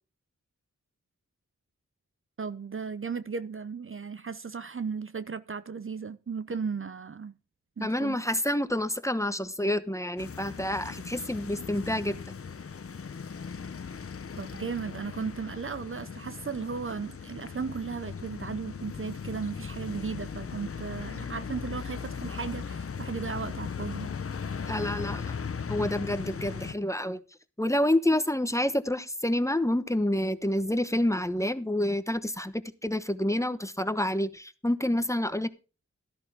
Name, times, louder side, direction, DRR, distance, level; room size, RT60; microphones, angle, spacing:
voice 1, 2.4-7.3 7.8-8.2 14.4-24.1, right 5 dB, 45° right, 0.7 m, -36 dB
voice 2, 7.8-12.2 24.7-25.3 25.7-27.2 27.6-35.5, left 1 dB, 10° left, 1.1 m, -28 dB
sound 1, 10.2-26.7, left 6 dB, 50° left, 0.8 m, -38 dB
13.5 x 11.5 x 3.6 m
cardioid pair, 55°, 30 cm